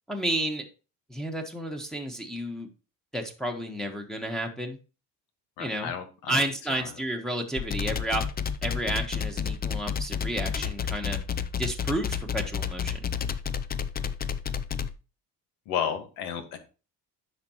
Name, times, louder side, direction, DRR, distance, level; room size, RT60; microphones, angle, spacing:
voice 1, 0.1-0.6 1.1-2.7 3.1-4.8 5.6-5.9 6.3-8.2 8.6-11.2 11.6-13.0, right 1 dB, ahead, 1 dB, 1.2 m, -31 dB
voice 2, 5.6-6.4 6.7-6.9 15.7-16.6, left 8 dB, 90° left, 7 dB, 1.7 m, -32 dB
sound 1, 7.6-14.9, left 7 dB, 25° left, 0.5 m, -30 dB
9.5 x 6.0 x 3.0 m, 0.34 s
cardioid pair, 110°, 36 cm